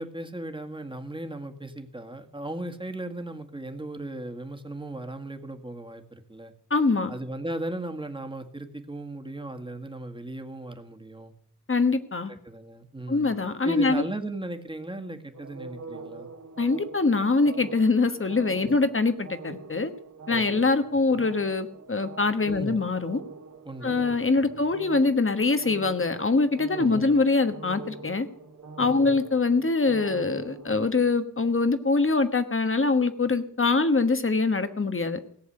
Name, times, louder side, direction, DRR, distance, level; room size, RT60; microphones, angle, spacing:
voice 1, 0.0-6.5 7.1-11.3 12.3-13.3 13.6-16.3 18.6-18.7 20.3-20.6 21.1-21.2 22.5-22.8 23.7-24.6 26.7-27.1 28.8-29.1, right 1 dB, 15° right, 5 dB, 1.8 m, -37 dB
voice 2, 6.7-7.1 11.7-12.3 13.1-14.0 16.6-19.9 20.3-23.2 23.8-28.3 28.8-35.2, left 3 dB, 40° left, 10 dB, 1.3 m, -24 dB
sound 1, 15.3-30.8, right 4 dB, 65° right, 2.2 m, -44 dB
17.5 x 7.2 x 9.9 m, 0.62 s
wide cardioid pair, 80°, 31 cm